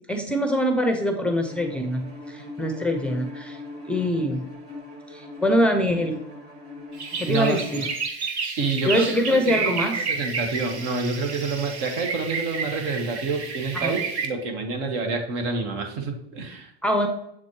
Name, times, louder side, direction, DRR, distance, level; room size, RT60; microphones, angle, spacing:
voice 1, 0.1-3.6 3.9-4.5 5.1-6.2 7.2-7.9 8.9-10.1 13.7-14.0 16.8-17.1, equal, 5° left, 5 dB, 0.6 m, -24 dB
Bowed string instrument, 1.4-8.0, left 2 dB, 45° right, 1.8 m, -41 dB
sound 1, 6.9-14.3, right 5 dB, 90° right, 1.1 m, -30 dB
voice 2, 7.3-7.8 8.6-16.7, right 4 dB, 65° right, 4 dB, 1.5 m, -28 dB
7.7 x 4.1 x 3.1 m, 0.77 s
supercardioid pair, 115°, 32 cm